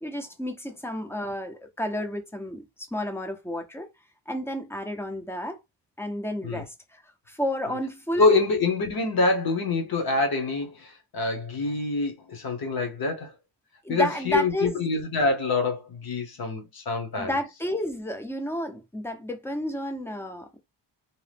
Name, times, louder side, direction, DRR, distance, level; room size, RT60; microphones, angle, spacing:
voice 1, 0.0-3.9 4.3-5.6 6.0-7.0 7.3-8.4 13.8-14.8 17.2-20.6, equal, 5° left, 0.5 m, -31 dB
voice 2, 8.2-13.3 13.9-17.3, left 3 dB, 55° left, 0.9 m, -25 dB
2.8 x 2.0 x 3.3 m
wide cardioid pair, 130°, 43 cm